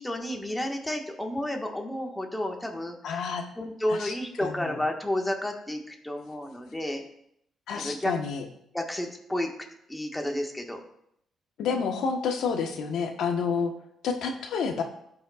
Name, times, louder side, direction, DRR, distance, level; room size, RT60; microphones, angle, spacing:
voice 1, 0.0-3.2 3.5-7.0 7.7-8.1 8.7-9.5 9.9-10.8, left 1 dB, 10° left, 2 dB, 1.4 m, -31 dB
voice 2, 3.0-3.4 3.9-4.1 4.4-4.8 7.7-8.4 11.6-13.7 14.0-14.8, left 5 dB, 75° left, 4 dB, 1.1 m, -29 dB
16.0 x 5.4 x 2.4 m, 0.74 s
cardioid pair, 90°, 0 cm